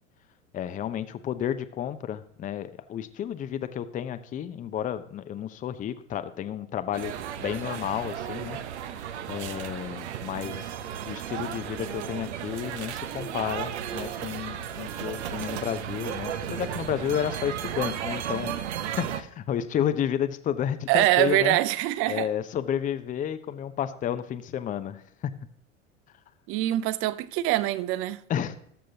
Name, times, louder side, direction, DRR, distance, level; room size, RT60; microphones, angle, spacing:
voice 1, 0.5-8.6 9.3-10.7 11.1-18.6 19.0-21.6 22.1-25.0 28.3-28.6, left 9 dB, 20° left, 0.7 m, -31 dB
sound 1, 6.9-19.2, right 9 dB, 65° right, 0.9 m, -34 dB
voice 2, 20.9-22.3 26.5-28.2, right 15 dB, 35° right, 0.6 m, -24 dB
19.5 x 7.6 x 2.8 m
figure-of-eight pair, 80°, 37 cm